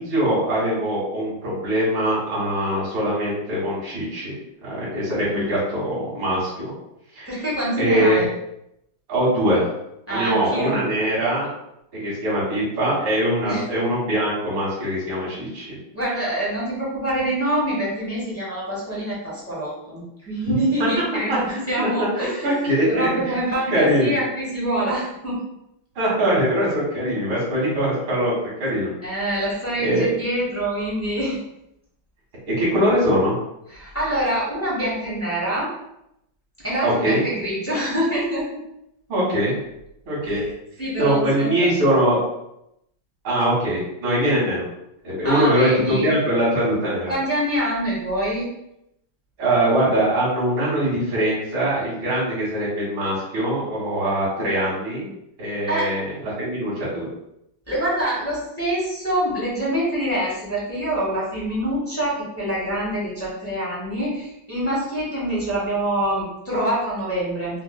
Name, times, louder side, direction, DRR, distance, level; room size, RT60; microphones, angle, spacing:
voice 1, 0.0-6.7 7.2-7.3 7.8-8.3 9.1-9.7 10.1-11.5 11.9-15.8 21.3-23.4 23.7-24.2 26.0-28.3 28.6-28.9 29.8-30.1 32.6-33.3 36.8-37.2 39.1-39.5 40.1-40.4 41.0-42.2 43.2-44.6 45.0-45.7 46.0-47.1 49.4-55.1 55.4-57.1, right 1 dB, 70° right, -7 dB, 2.4 m, -22 dB
voice 2, 7.3-8.3 10.1-10.8 13.4-13.7 15.9-25.4 29.0-31.4 33.7-35.7 36.6-38.5 40.3-40.5 40.8-41.7 45.2-46.1 47.1-48.5 55.7-55.9 57.7-67.6, right 1 dB, 10° left, -7 dB, 0.6 m, -25 dB
5.3 x 2.3 x 2.2 m, 0.81 s
omnidirectional pair, 2.3 m